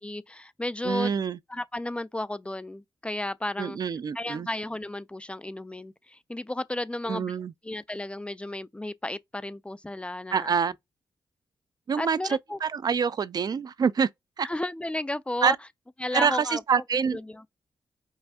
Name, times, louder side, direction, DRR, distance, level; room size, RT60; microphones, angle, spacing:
voice 1, 0.0-1.1 1.5-3.8 4.1-7.4 7.6-10.5 12.0-12.6 14.4-15.6 16.0-16.6 17.1-17.4, left 1 dB, 15° left, 0.4 m, -33 dB
voice 2, 0.8-1.4 3.6-4.5 7.1-7.5 10.3-10.7 11.9-14.1 14.4-14.5 15.4-15.6 16.1-17.2, right 6 dB, 55° right, 0.4 m, -26 dB
5.5 x 2.5 x 2.4 m
cardioid pair, 60°, 8 cm